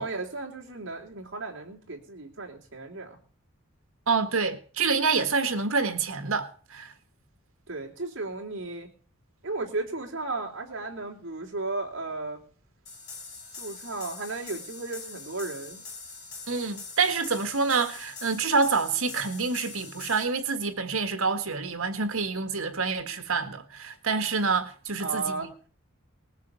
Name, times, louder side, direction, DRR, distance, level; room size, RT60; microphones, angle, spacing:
voice 1, 0.0-3.2 7.7-8.9 9.4-12.4 13.6-15.8 25.0-25.5, right 3 dB, 60° right, 3.3 m, -35 dB
voice 2, 4.1-6.9 16.5-25.7, right 4 dB, 85° right, 1.8 m, -27 dB
sound 1, 12.9-20.2, left 4 dB, 50° left, 5.4 m, -43 dB
19.5 x 7.4 x 7.0 m
head